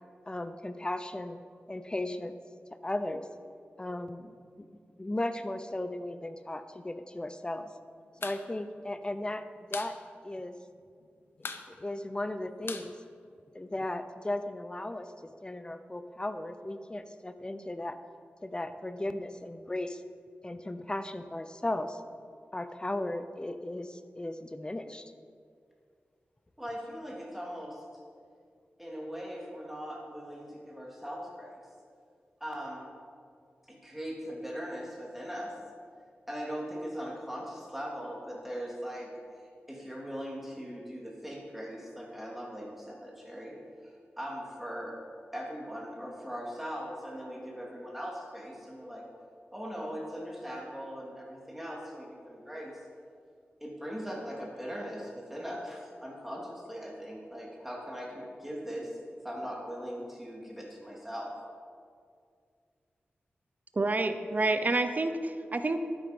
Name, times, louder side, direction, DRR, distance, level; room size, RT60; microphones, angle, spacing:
voice 1, 0.3-1.4 1.7-2.3 2.8-3.3 3.8-4.3 4.6-4.7 5.0-7.7 8.2-9.4 9.7-9.9 10.2-10.6 11.8-12.9 13.5-15.1 15.4-18.0 18.4-20.0 20.4-22.0 22.5-25.1, left 1 dB, 20° left, 10 dB, 0.7 m, -36 dB
sound 1, 8.1-8.4 8.7-8.8 9.1-10.0 10.3-10.4 10.6-11.0 11.4-13.8, left 4 dB, 70° left, 0.8 m, -41 dB
voice 2, 26.6-27.8 28.8-31.6 32.4-32.9 33.7-35.5 36.3-39.1 39.7-43.6 43.8-45.0 45.3-49.0 49.5-52.8 53.6-59.0 59.2-61.3, equal, 5° right, -3 dB, 3.1 m, -40 dB
voice 3, 63.7-65.8, right 2 dB, 40° right, 8 dB, 0.8 m, -28 dB
11.5 x 9.9 x 5.5 m, 2.2 s
wide cardioid pair, 75°, 4 cm